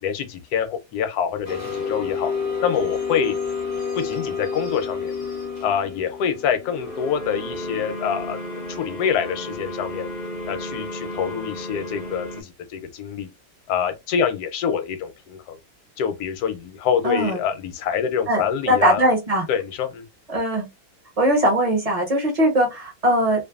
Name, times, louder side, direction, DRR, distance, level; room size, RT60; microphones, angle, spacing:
voice 1, 0.0-2.3 2.6-3.4 4.0-5.1 5.6-8.4 8.7-10.1 10.5-13.3 13.7-15.6 16.0-19.0 19.5-20.0, left 7 dB, 85° left, 1.1 m, -26 dB
sound 1, 1.4-12.4, left 4 dB, 55° left, 0.4 m, -30 dB
voice 2, 17.0-17.4 18.3-19.5 20.3-20.7 21.2-23.4, right 1 dB, 40° right, 0.5 m, -20 dB
2.5 x 2.4 x 2.3 m
omnidirectional pair, 1.6 m